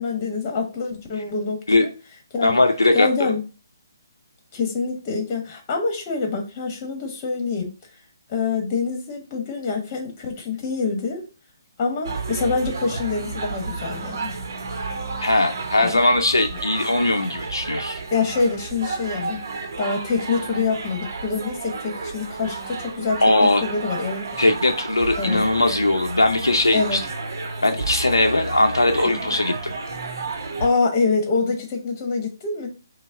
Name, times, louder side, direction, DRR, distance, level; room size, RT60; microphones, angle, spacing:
voice 1, 0.0-1.9 2.3-2.6 2.9-3.4 4.5-7.7 8.3-11.2 11.8-14.3 15.8-16.0 16.5-16.6 18.1-19.4 19.8-24.3 25.2-25.4 26.7-27.0 29.2-29.4 30.6-32.7, left 4 dB, 30° left, 3 dB, 1.1 m, -25 dB
voice 2, 2.4-3.3 15.2-18.0 23.2-23.6 24.4-27.0 27.6-29.7, left 2 dB, 90° left, 4 dB, 0.5 m, -19 dB
sound 1, 12.0-30.7, right 4 dB, 60° right, 0.7 m, -32 dB
5.2 x 2.0 x 3.5 m, 0.34 s
figure-of-eight pair, 140°, 2 cm